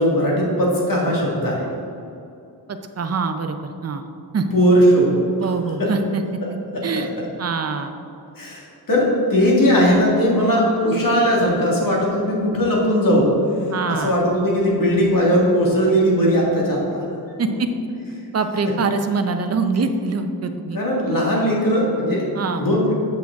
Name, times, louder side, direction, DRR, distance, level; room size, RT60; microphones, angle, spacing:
voice 1, 0.0-1.7 4.5-5.2 5.8-5.9 6.4-7.2 8.4-13.3 13.9-17.1 18.7-18.8 20.7-22.3 22.6-22.9, equal, 50° left, -3 dB, 1.8 m, -19 dB
voice 2, 2.7-4.0 4.3-4.5 5.4-6.2 6.8-7.1 7.4-7.9 13.7-14.1 17.4-17.7 18.3-20.8 22.3-22.6, right 4 dB, 35° right, 7 dB, 0.5 m, -24 dB
8.4 x 6.1 x 3.5 m, 2.7 s
wide cardioid pair, 140°, 43 cm